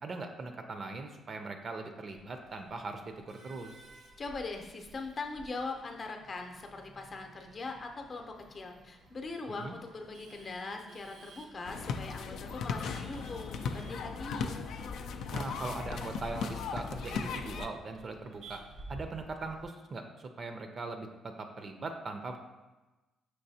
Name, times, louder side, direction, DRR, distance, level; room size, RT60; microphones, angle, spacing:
voice 1, 0.0-3.8 9.5-9.7 15.3-18.6 18.9-22.4, right 3 dB, 45° right, 5 dB, 0.5 m, -40 dB
Male speech man speaking / Laughter / Chatter, 2.1-19.6, right 2 dB, 70° right, 0.7 m, -55 dB
voice 2, 4.2-14.5, left 3 dB, 40° left, 3 dB, 0.6 m, -41 dB
sound 1, 11.6-17.7, left 5 dB, 80° left, 0.3 m, -37 dB
5.8 x 3.1 x 2.7 m, 1.1 s
cardioid pair, 90°, 0 cm